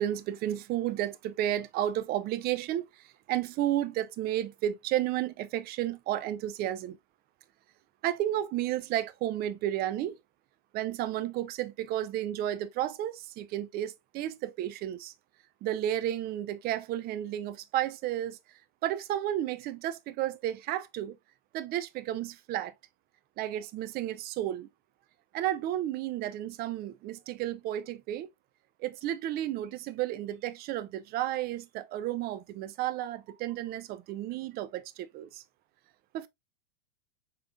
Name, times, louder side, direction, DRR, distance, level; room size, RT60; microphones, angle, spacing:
voice 1, 0.0-7.0 8.0-10.2 10.7-15.1 15.6-18.4 18.8-21.2 21.5-22.7 23.4-24.7 25.3-28.3 28.8-35.4 36.1-36.3, right 12 dB, 30° right, 0.5 m, -32 dB
5.3 x 3.7 x 2.4 m
hypercardioid pair, 105°, 30 cm